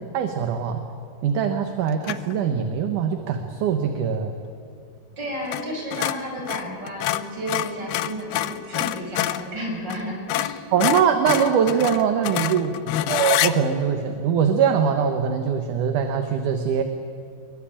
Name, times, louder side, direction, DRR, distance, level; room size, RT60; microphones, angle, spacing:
voice 1, 0.1-0.8 1.2-4.3 10.7-12.8 13.0-16.8, right 7 dB, 65° right, 6 dB, 2.5 m, -22 dB
sound 1, 2.0-2.4 5.5-5.7 5.9-9.5 9.9-10.0 10.3-13.5, left 14 dB, 85° left, 2.7 m, -26 dB
voice 2, 5.2-10.6 12.7-13.0, equal, 25° right, 0 dB, 6.6 m, -32 dB
24.5 x 22.5 x 8.8 m, 2.4 s
omnidirectional pair, 4.3 m